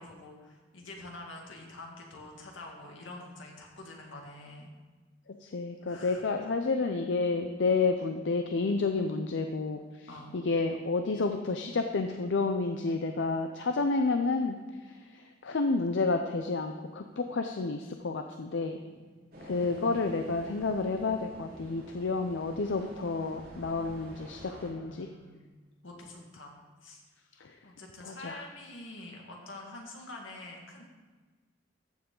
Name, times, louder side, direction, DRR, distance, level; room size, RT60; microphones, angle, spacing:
voice 1, 0.0-4.7 5.8-6.2 7.8-7.9 10.1-10.3 18.8-19.9 24.5-25.4 25.8-26.5 26.8-27.0 27.6-30.8, left 2 dB, 85° left, 0 dB, 2.0 m, -47 dB
voice 2, 5.3-10.1 10.3-14.6 14.8-18.8 19.4-25.1 27.4-27.6 28.0-28.4, left 3 dB, 70° left, 6 dB, 0.5 m, -30 dB
sound 1, 19.3-24.7, right 1 dB, 50° right, 2.6 m, -48 dB
14.0 x 7.1 x 3.8 m, 1.3 s
head